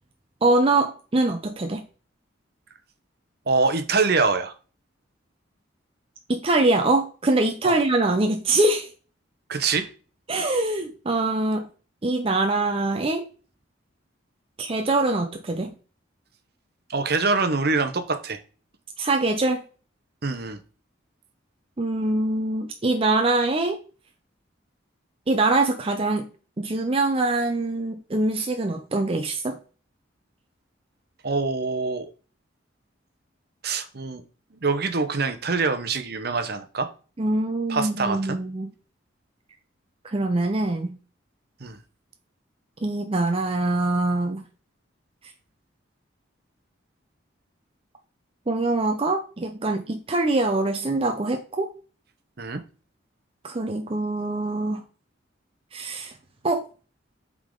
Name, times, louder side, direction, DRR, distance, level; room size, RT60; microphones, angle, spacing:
voice 1, 0.4-1.8 6.3-8.9 10.3-11.7 12.0-13.2 14.6-15.7 19.0-19.6 21.8-23.8 25.3-26.3 26.6-29.6 37.2-38.7 40.0-41.0 42.8-44.4 48.5-51.7 53.4-54.8 55.7-56.1 56.4-56.6, right 2 dB, 30° right, 5 dB, 0.5 m, -23 dB
voice 2, 3.5-4.5 7.6-7.8 9.5-9.9 16.9-18.4 20.2-20.6 31.2-32.1 33.6-34.2 34.5-36.9 37.7-38.4 41.6-41.8 52.4-52.6, right 4 dB, 55° right, 8 dB, 0.8 m, -24 dB
8.2 x 3.7 x 3.8 m, 0.37 s
head